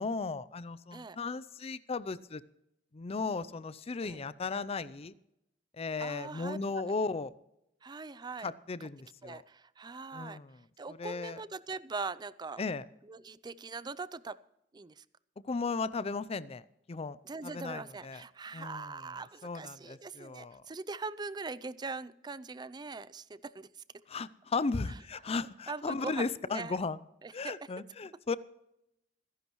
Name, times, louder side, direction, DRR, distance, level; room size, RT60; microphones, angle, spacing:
voice 1, 0.0-2.4 2.9-5.1 5.7-7.3 8.4-9.4 10.1-11.4 12.6-12.8 15.4-16.6 16.9-17.2 17.4-18.2 18.5-19.1 19.4-20.6 24.1-27.0 27.3-28.4, left 4 dB, 35° left, 17 dB, 0.5 m, -36 dB
voice 2, 6.0-6.6 7.8-8.5 9.2-10.4 10.8-12.6 13.1-14.4 14.7-15.0 17.3-23.7 25.7-26.8 27.2-27.5, right 4 dB, 25° right, 17 dB, 0.4 m, -41 dB
25.5 x 11.0 x 3.1 m, 0.83 s
head